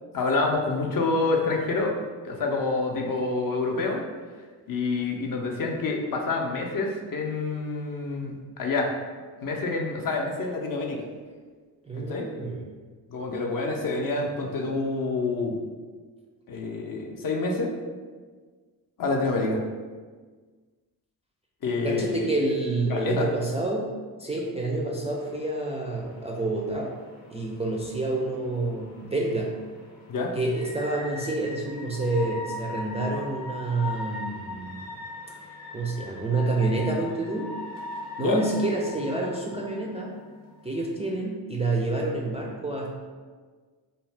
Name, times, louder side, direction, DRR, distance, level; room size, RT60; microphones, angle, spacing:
voice 1, 0.1-2.0 2.2-4.0 4.7-8.9 9.4-11.0 12.1-12.3 13.1-15.6 16.5-17.7 19.0-19.6 21.6-22.3 22.9-23.3 30.1-30.3 38.2-38.4, left 3 dB, 45° left, 1 dB, 0.6 m, -27 dB
voice 2, 11.8-12.6 21.8-23.9 24.2-26.9 27.3-29.6 30.3-34.8 35.7-37.5 38.2-40.1 40.6-42.9, right 2 dB, 15° right, -3 dB, 0.3 m, -28 dB
sound 1, 25.1-41.1, left 3 dB, 80° left, 0.8 m, -41 dB
2.6 x 2.1 x 3.2 m, 1.5 s
supercardioid pair, 40°, 49 cm